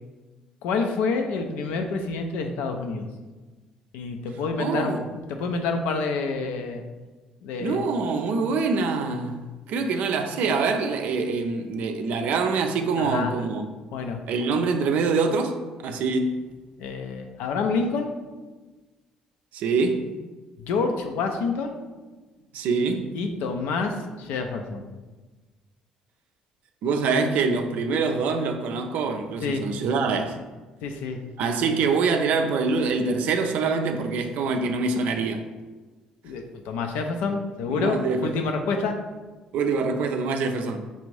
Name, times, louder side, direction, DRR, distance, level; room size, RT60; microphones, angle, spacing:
voice 1, 0.6-3.1 3.9-6.8 7.4-7.8 13.0-13.3 13.9-14.2 16.8-18.1 20.7-21.8 23.1-24.8 29.4-29.6 30.8-31.2 36.2-39.0, left 4 dB, 75° left, 0.4 m, -28 dB
voice 2, 4.6-5.0 7.6-13.7 14.3-16.3 19.5-20.1 22.5-23.1 26.8-30.4 31.4-35.5 37.7-38.4 39.5-40.8, right 4 dB, 65° right, 0.4 m, -25 dB
5.3 x 2.5 x 3.2 m
hypercardioid pair, 55°, 3 cm